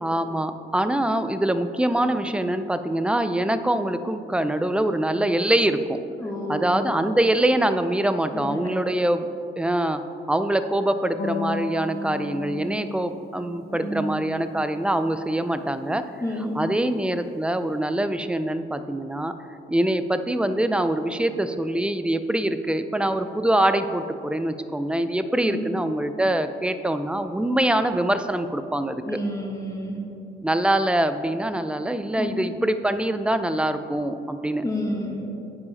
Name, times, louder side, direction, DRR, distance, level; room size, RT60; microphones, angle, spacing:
voice 1, 0.0-6.0 6.5-9.3 9.6-10.0 10.3-16.0 16.5-19.3 19.7-29.2 30.4-34.6, right 1 dB, 5° right, 10 dB, 0.3 m, -24 dB
voice 2, 6.2-7.0 8.3-8.7 13.7-14.3 16.2-16.6 25.4-25.6 29.0-30.0 32.2-32.4 34.6-35.3, equal, 15° left, 0 dB, 1.4 m, -30 dB
sound 1, 11.2-17.4, left 3 dB, 55° left, 0.7 m, -37 dB
9.9 x 4.9 x 4.1 m, 2.7 s
cardioid pair, 90°, 20 cm